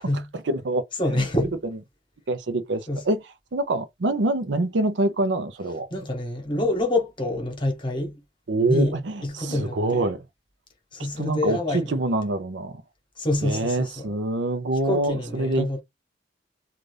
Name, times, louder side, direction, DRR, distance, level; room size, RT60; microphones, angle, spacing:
voice 1, 0.3-1.3 1.6-1.8 2.3-3.2 3.5-5.9 8.5-10.2 11.1-12.8 13.4-15.8, right 2 dB, 75° right, 0.6 m, -25 dB
voice 2, 1.0-1.5 2.9-3.0 5.9-8.2 8.7-8.9 9.2-10.0 10.9-11.9 13.2-14.2 14.9-15.8, left 1 dB, 25° left, 1.0 m, -26 dB
2.6 x 2.4 x 3.2 m
head